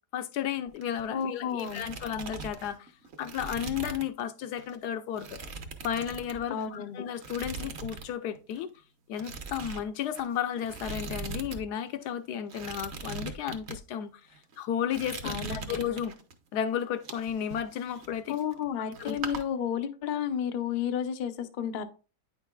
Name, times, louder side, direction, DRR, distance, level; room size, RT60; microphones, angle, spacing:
voice 1, 0.1-2.9 3.2-5.4 5.8-8.7 9.1-14.1 14.6-16.1 16.5-18.4 19.0-19.2, left 9 dB, 80° left, 1.2 m, -33 dB
sound 1, 0.7-1.2 1.5-4.2 4.6-4.8 5.2-6.8 7.2-8.1 8.4-8.6 9.1-11.6 11.9-12.0 12.5-13.8 14.4-14.6 14.9-16.3 16.8-18.7 18.9-19.4, right 4 dB, 50° right, 1.0 m, -40 dB
voice 2, 1.1-1.9 6.5-7.0 15.2-15.8 18.3-21.8, left 8 dB, 65° left, 0.5 m, -32 dB
9.2 x 5.7 x 2.3 m
omnidirectional pair, 1.7 m